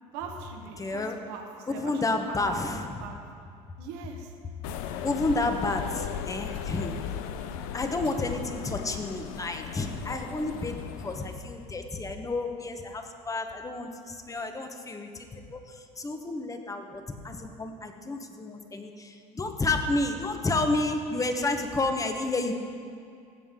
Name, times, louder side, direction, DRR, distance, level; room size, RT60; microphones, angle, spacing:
voice 1, 0.1-3.2 3.8-4.3, right 5 dB, 70° right, 2 dB, 1.3 m, -41 dB
voice 2, 0.8-1.2 1.7-2.9 5.0-6.9 7.7-22.5, left 2 dB, 20° left, 6 dB, 1.1 m, -30 dB
sound 1, 4.6-11.6, left 9 dB, 75° left, 0.6 m, -37 dB
16.0 x 7.2 x 3.7 m, 2.4 s
supercardioid pair, 95°, 18 cm